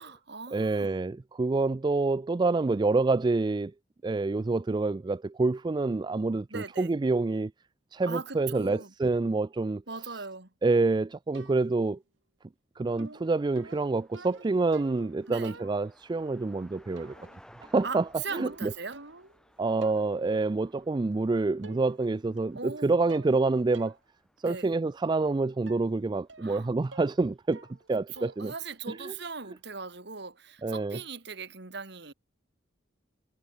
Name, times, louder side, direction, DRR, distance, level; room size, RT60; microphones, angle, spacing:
voice 1, 0.0-1.0 6.5-6.9 8.1-8.9 9.9-10.5 15.3-15.6 17.8-19.0 22.5-22.9 24.4-24.7 26.4-26.7 28.1-32.1, right 4 dB, 60° right, 2.4 m, -39 dB
voice 2, 0.5-3.7 4.0-7.5 7.9-9.8 10.6-12.0 12.8-17.1 17.7-18.0 18.3-18.7 19.6-23.9 24.4-27.6 27.9-28.5 29.0-29.1 30.6-31.0, right 3 dB, 25° right, 0.3 m, -27 dB
sound 1, 11.3-11.9 13.0-15.1 15.4-16.1 17.0-17.4 17.6-19.4 19.8-20.2 21.1-21.2 21.6-22.1 22.4-22.8 23.1-23.4 23.7-24.0 24.4-24.5 25.7-25.9 26.3-26.6 26.9-27.2 27.5-27.9 28.2-28.5, right 2 dB, 75° right, 5.1 m, -49 dB
sound 2, 13.2-30.0, equal, 5° left, 4.8 m, -62 dB
head